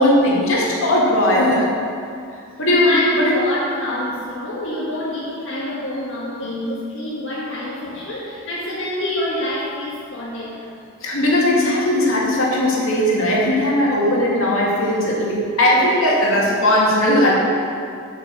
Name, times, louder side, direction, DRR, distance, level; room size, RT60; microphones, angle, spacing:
voice 1, 0.0-1.7 2.6-3.4 11.0-17.3, left 1 dB, 80° left, -4 dB, 2.3 m, -18 dB
voice 2, 2.7-10.7, left 1 dB, 65° left, -8 dB, 1.7 m, -26 dB
8.7 x 5.8 x 7.5 m, 2.4 s
head